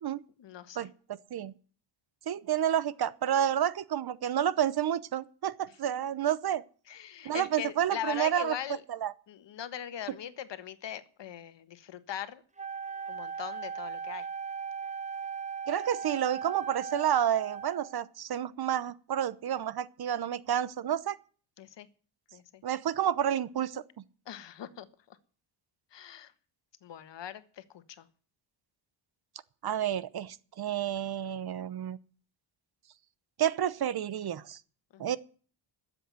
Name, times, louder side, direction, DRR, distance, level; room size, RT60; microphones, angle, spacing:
voice 1, 0.4-0.9 6.9-8.8 9.3-12.4 13.1-14.3 21.6-21.9 22.3-22.6 24.3-25.2 25.9-26.3 26.8-28.1 34.9-35.0, left 10 dB, 65° left, 1.5 m, -41 dB
voice 2, 2.3-6.6 7.2-8.6 8.9-9.1 15.7-21.2 22.6-23.8 29.6-32.0 33.4-34.6 35.0-35.2, right 10 dB, 50° right, 0.9 m, -30 dB
Wind instrument woodwind instrument, 12.6-18.0, right 6 dB, 15° right, 1.0 m, -38 dB
12.5 x 7.9 x 9.5 m
cardioid pair, 105°, 47 cm